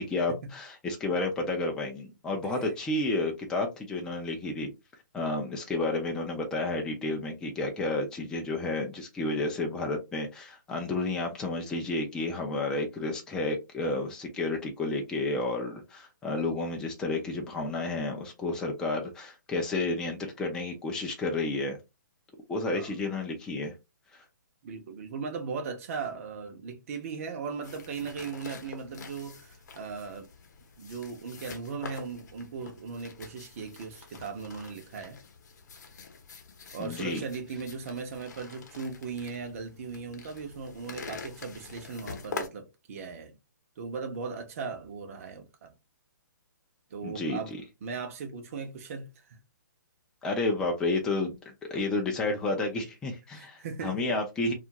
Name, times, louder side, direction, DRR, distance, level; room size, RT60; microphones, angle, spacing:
voice 1, 0.0-4.7 5.1-21.8 22.5-23.7 24.1-24.2 36.8-37.2 47.0-47.6 50.2-51.3 51.6-54.5, left 2 dB, 5° left, 0.4 m, -31 dB
voice 2, 24.6-30.3 30.8-35.2 36.7-43.3 43.8-45.7 46.9-47.5 47.8-49.4 53.3-54.1, right 5 dB, 45° right, 0.7 m, -38 dB
sound 1, 27.6-42.5, left 5 dB, 60° left, 0.8 m, -45 dB
2.5 x 2.4 x 2.8 m
hypercardioid pair, 155°, 10 cm